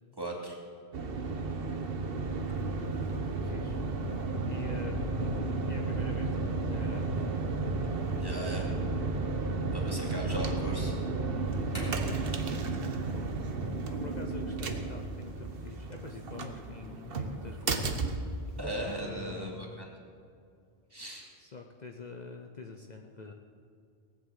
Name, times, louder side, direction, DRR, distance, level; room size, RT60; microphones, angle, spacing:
voice 1, 0.2-0.6 8.2-8.6 9.7-10.9 18.6-19.9 20.9-21.2, equal, 20° right, -2 dB, 2.6 m, -37 dB
sound 1, 0.9-19.0, right 3 dB, 65° right, 1.2 m, -33 dB
voice 2, 1.3-1.6 2.5-2.7 3.2-3.8 4.5-7.4 9.9-10.1 11.9-12.2 13.1-13.3 13.9-18.1 18.7-19.9 21.4-23.3, left 3 dB, 45° left, 3 dB, 0.9 m, -45 dB
sound 2, 11.5-18.1, left 1 dB, 60° left, 3.5 m, -51 dB
18.0 x 7.8 x 8.2 m, 2.4 s
omnidirectional pair, 1.1 m